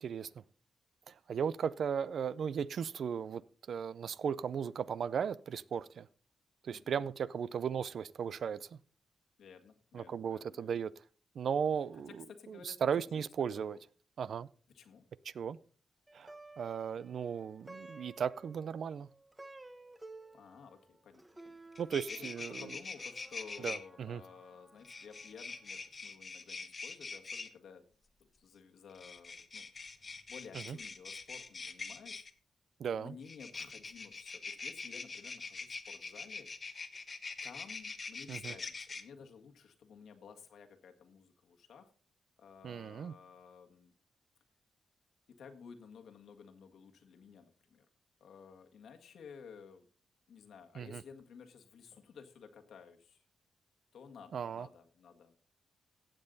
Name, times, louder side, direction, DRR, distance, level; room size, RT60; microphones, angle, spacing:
voice 1, 1.1-6.1 6.6-8.8 9.9-10.9 11.3-13.8 14.2-14.5 15.2-15.6 16.1-19.1 21.8-22.7 23.6-24.2 30.5-30.8 32.8-33.1 38.3-38.5 42.6-43.1 50.8-51.0 54.3-54.7, right 7 dB, 65° right, 19 dB, 0.5 m, -36 dB
voice 2, 6.7-7.0 9.4-10.8 12.1-13.3 13.6-13.8 14.7-15.0 20.3-21.6 22.1-27.8 28.4-32.3 32.9-36.5 37.4-41.9 42.4-44.0 45.3-47.9 48.2-49.9 50.3-53.2 53.9-55.4, left 6 dB, 85° left, 5 dB, 1.7 m, -54 dB
Plucked string instrument, 16.1-25.5, right 2 dB, 15° right, 0.8 m, -55 dB
sound 1, 21.4-21.5 21.7-23.8 24.8-27.5 28.9-32.3 33.2-39.0, left 4 dB, 35° left, 1.1 m, -44 dB
15.5 x 7.7 x 4.0 m, 0.40 s
wide cardioid pair, 115°, 0 cm